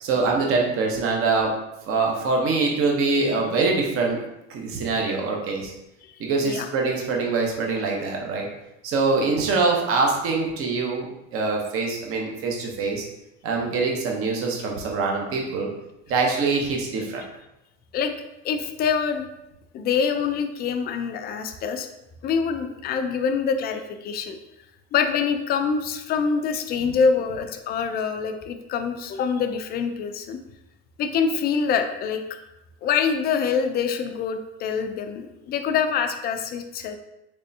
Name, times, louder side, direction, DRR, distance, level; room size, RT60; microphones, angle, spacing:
voice 1, 0.0-1.6 1.9-4.2 4.5-5.7 6.2-8.5 8.8-11.1 11.3-13.1 13.4-15.7 16.1-17.3, right 4 dB, 40° right, 0 dB, 0.8 m, -24 dB
voice 2, 6.0-6.7 17.9-18.1 18.4-19.3 19.7-21.9 22.2-24.4 24.9-30.4 31.0-32.2 32.8-37.0, left 6 dB, 30° left, 7 dB, 0.4 m, -25 dB
3.4 x 3.3 x 2.7 m, 0.91 s
supercardioid pair, 110°, 33 cm